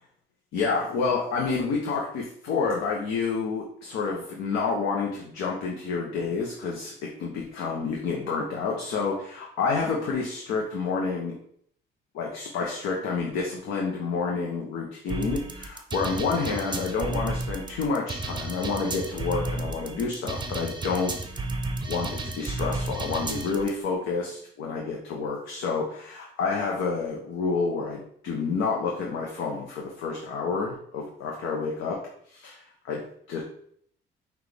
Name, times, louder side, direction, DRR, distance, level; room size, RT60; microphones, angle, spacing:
voice 1, 0.5-11.3 12.1-21.5 21.9-32.0 32.3-33.4, left 4 dB, 90° left, -1 dB, 0.7 m, -29 dB
sound 1, 15.1-23.7, right 2 dB, 25° right, 0.6 m, -32 dB
5.9 x 2.4 x 3.3 m, 0.65 s
cardioid pair, 90°, 20 cm